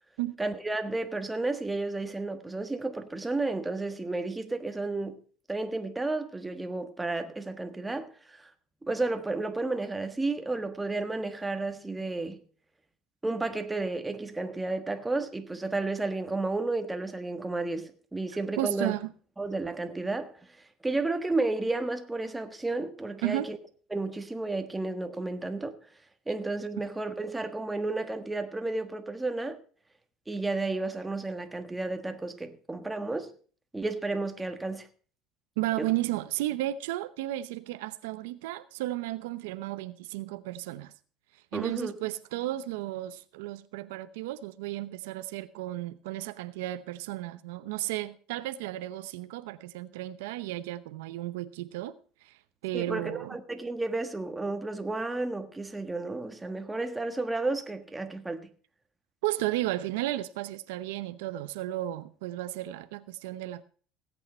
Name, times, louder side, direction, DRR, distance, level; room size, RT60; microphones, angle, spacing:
voice 1, 0.4-5.2 5.5-8.5 8.8-12.4 13.2-18.9 19.4-20.4 20.8-23.6 23.9-25.8 26.3-29.6 30.3-33.3 33.7-34.9 35.8-35.9 41.5-42.0 52.7-58.5, right 2 dB, 10° right, 1.4 m, -32 dB
voice 2, 18.6-19.1 23.2-23.5 35.6-40.9 41.5-51.9 52.2-52.3 52.6-53.4 59.2-63.6, right 15 dB, 90° right, 0.7 m, -33 dB
17.0 x 8.5 x 4.3 m
supercardioid pair, 115°, 0 cm